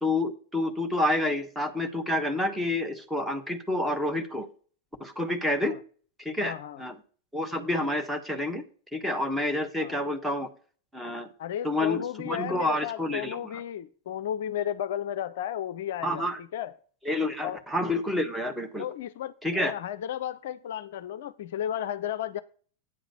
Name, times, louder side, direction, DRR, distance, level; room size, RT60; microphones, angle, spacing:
voice 1, 0.0-4.5 5.0-5.8 6.2-7.0 7.3-8.6 8.9-10.5 10.9-11.3 11.6-13.4 16.0-16.4 17.0-18.8 19.4-19.7, left 1 dB, 5° right, 1.3 m, -28 dB
voice 2, 6.4-6.8 9.8-10.0 11.4-16.7 17.4-17.6 18.8-22.4, left 10 dB, 55° left, 0.4 m, -34 dB
8.9 x 3.8 x 6.8 m
figure-of-eight pair, 90°, 0 cm